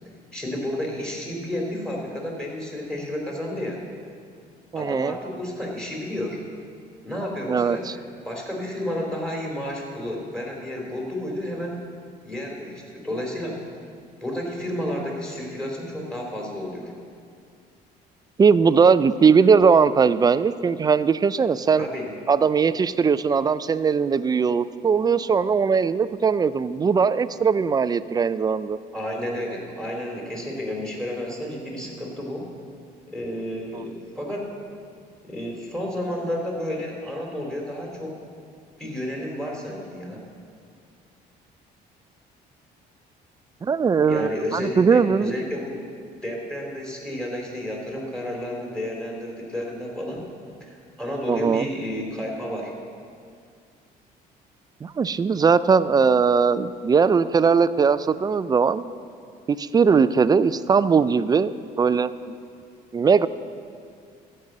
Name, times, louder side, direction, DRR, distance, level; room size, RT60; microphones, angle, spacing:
voice 1, 0.3-3.8 4.7-6.4 7.0-7.8 8.2-11.8 12.2-13.6 14.2-16.9 21.8-22.1 28.9-32.5 33.1-34.5 35.2-38.1 38.8-40.2 44.0-45.7 46.1-50.2 50.6-52.7, left 1 dB, 5° left, -1 dB, 2.8 m, -31 dB
voice 2, 4.7-5.2 7.5-7.9 18.4-21.9 22.3-28.8 43.6-45.3 51.3-51.6 54.8-58.9 59.5-62.1 62.9-63.3, right 5 dB, 25° right, 15 dB, 0.4 m, -20 dB
14.0 x 5.5 x 7.7 m, 2.2 s
cardioid pair, 110°, 17 cm